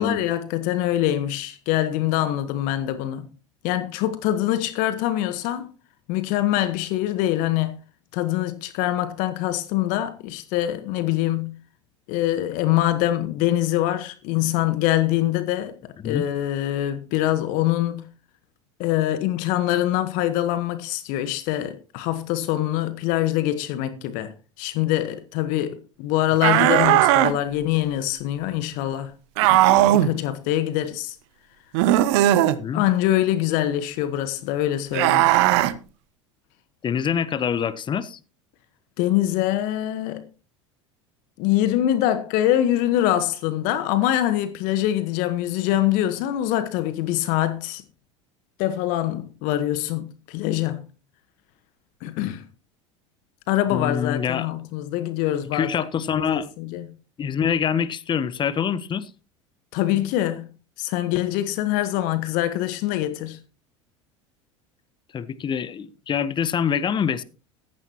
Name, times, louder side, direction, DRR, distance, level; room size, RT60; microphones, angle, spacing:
voice 1, 0.0-3.3 3.6-5.7 6.1-7.8 8.1-11.5 12.1-15.7 16.0-18.0 18.8-24.3 24.6-29.1 29.4-31.2 32.7-35.3 39.0-40.3 41.4-47.8 48.6-50.8 52.0-52.4 53.5-55.7 56.1-56.9 59.7-60.5 60.8-63.4, left 13 dB, 60° left, 1.3 m, -24 dB
sound 1, 26.4-27.3 29.4-30.1 31.7-32.6 34.9-35.7, right 14 dB, 65° right, 1.0 m, -17 dB
voice 2, 36.8-38.2 53.7-54.5 55.5-56.5 57.2-59.1 65.1-67.2, left 7 dB, 30° left, 1.0 m, -25 dB
15.0 x 13.5 x 3.0 m
hypercardioid pair, 75°, 16 cm